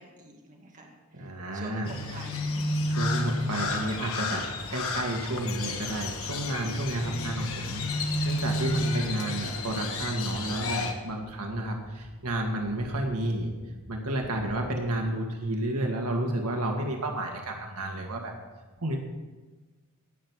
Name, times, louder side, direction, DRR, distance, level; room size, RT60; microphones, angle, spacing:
voice 1, 0.0-2.8 6.9-7.2, right 1 dB, 35° right, 0 dB, 2.2 m, -47 dB
voice 2, 1.1-1.9 3.0-4.4 4.7-13.5 13.9-18.3 18.8-19.0, right 1 dB, 80° right, 2 dB, 1.9 m, -31 dB
Crow, 1.8-10.9, left 2 dB, 65° left, 1.6 m, -31 dB
sound 1, 4.6-4.7 4.9-5.3 5.7-6.1 6.4-6.9 7.2-7.6 8.0-8.4 8.8-9.2 9.5-9.9 10.3-10.8 11.1-11.5 11.8-12.2 12.6-13.0 13.4-13.8 14.2-14.7, equal, 30° left, 2.1 m, -53 dB
18.0 x 6.2 x 7.3 m, 1.3 s
head